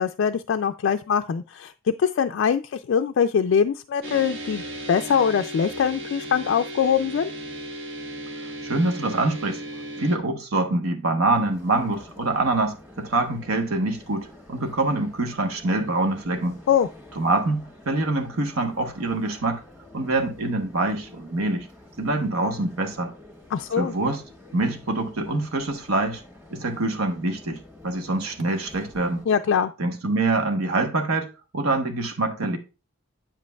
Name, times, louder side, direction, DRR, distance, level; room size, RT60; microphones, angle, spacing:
voice 1, 0.0-1.7 2.0-4.6 4.9-7.3 16.7-16.9 23.5-23.9 29.3-29.7, left 7 dB, 60° left, 0.3 m, -22 dB
sound 1, 4.0-10.2, right 1 dB, 60° right, 1.2 m, -36 dB
voice 2, 8.6-9.6 10.0-16.6 17.2-19.6 19.9-21.7 22.0-23.1 23.8-24.2 24.5-26.2 26.5-29.2 29.8-31.3 31.5-32.6, right 2 dB, 80° right, 1.1 m, -25 dB
sound 2, 11.3-29.3, left 1 dB, 10° right, 1.6 m, -48 dB
8.9 x 7.5 x 2.3 m
head